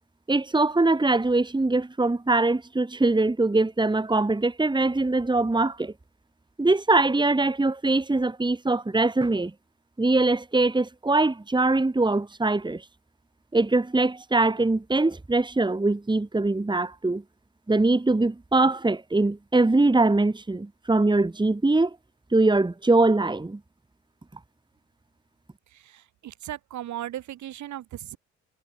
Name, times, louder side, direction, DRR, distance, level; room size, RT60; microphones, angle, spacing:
voice 1, 0.3-5.9 6.6-9.5 10.0-12.8 13.5-17.2 17.7-22.0 22.3-23.6, right 2 dB, 15° right, 2.1 m, -22 dB
voice 2, 26.2-28.2, right 12 dB, 70° right, 5.6 m, -36 dB
supercardioid pair, 55°, 30 cm